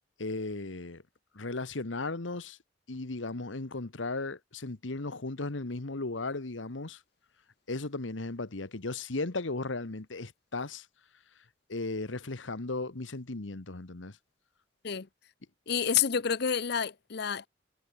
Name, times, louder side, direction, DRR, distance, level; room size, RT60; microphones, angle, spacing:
voice 1, 0.2-1.0 1.3-2.6 2.9-7.0 7.7-10.9 11.7-14.2, left 3 dB, 90° left, 1.4 m, -36 dB
voice 2, 15.7-17.5, left 7 dB, 60° left, 0.7 m, -29 dB
head